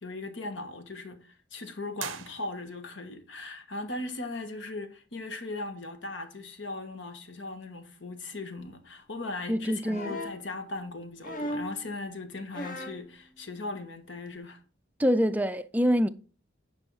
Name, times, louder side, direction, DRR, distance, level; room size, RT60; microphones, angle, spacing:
voice 1, 0.0-14.6, left 2 dB, 70° left, 1.5 m, -38 dB
sound 1, 1.9-3.0, right 11 dB, 85° right, 0.6 m, -41 dB
voice 2, 9.5-10.1 15.0-16.1, equal, 10° right, 0.4 m, -25 dB
sound 2, 9.9-10.4 11.2-11.8 12.5-13.0 14.3-14.4, left 1 dB, 45° left, 1.2 m, -36 dB
9.8 x 5.5 x 4.7 m
head